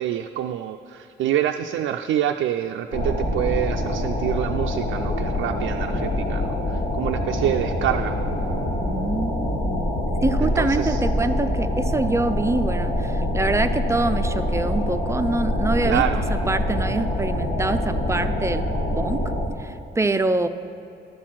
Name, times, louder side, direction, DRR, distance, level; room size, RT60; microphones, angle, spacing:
voice 1, 0.0-8.2 10.4-11.0 15.8-16.2, right 11 dB, 75° right, 4 dB, 0.4 m, -26 dB
sound 1, 2.9-19.5, left 1 dB, 60° left, 1.7 m, -25 dB
voice 2, 8.8-9.9 10.2-18.7 19.0-19.2 19.6-20.5, right 2 dB, 15° right, 10 dB, 0.5 m, -25 dB
12.0 x 4.4 x 7.4 m, 2.8 s
cardioid pair, 90°, 20 cm